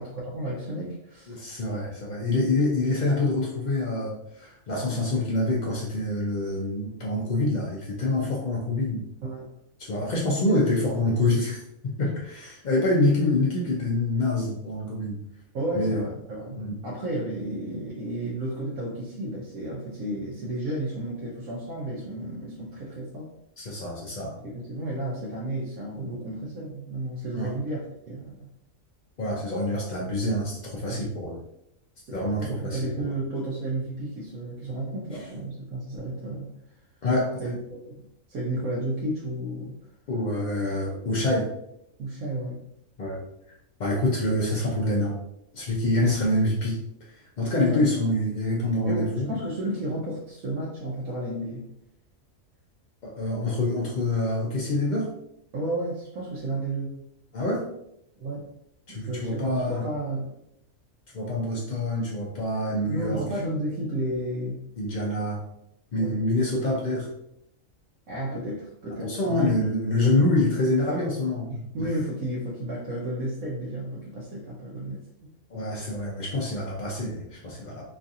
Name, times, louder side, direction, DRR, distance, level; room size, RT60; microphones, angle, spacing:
voice 1, 0.0-1.4 9.2-9.5 15.5-23.3 24.4-28.5 30.9-31.1 32.1-36.5 37.4-38.0 38.3-39.8 42.0-42.6 46.0-46.2 47.6-47.8 48.9-51.7 55.5-57.0 58.2-58.5 58.9-60.4 62.9-64.6 66.0-66.2 68.1-69.6 71.5-75.3, right 1 dB, 80° right, -4 dB, 1.1 m, -32 dB
voice 2, 1.3-9.0 9.8-15.2 15.7-16.0 16.6-16.8 23.6-24.4 27.3-27.5 29.2-31.4 32.1-33.1 35.1-35.2 37.0-37.4 40.1-41.5 43.0-43.2 43.8-45.2 45.5-49.3 53.0-55.1 57.3-57.7 58.9-59.8 61.1-63.2 64.8-65.4 65.9-67.1 69.0-71.9 75.5-77.9, left 2 dB, 75° left, -3 dB, 0.4 m, -26 dB
3.1 x 2.4 x 2.6 m, 0.78 s
omnidirectional pair, 1.4 m